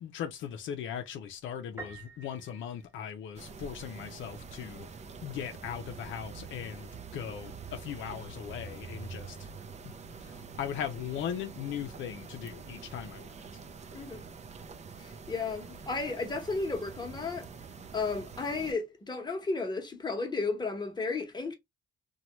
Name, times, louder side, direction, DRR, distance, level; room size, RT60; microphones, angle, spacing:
voice 1, 0.0-4.9 5.2-9.5 10.2-13.3, left 9 dB, 75° left, 0.5 m, -39 dB
Piano, 1.8-3.6, right 3 dB, 10° right, 0.9 m, -48 dB
sound 1, 3.3-18.7, right 5 dB, 35° right, 0.5 m, -46 dB
voice 2, 13.9-14.2 15.0-17.5 17.9-21.5, left 3 dB, 20° left, 1.0 m, -33 dB
2.9 x 2.3 x 2.9 m
cardioid pair, 90°, 20 cm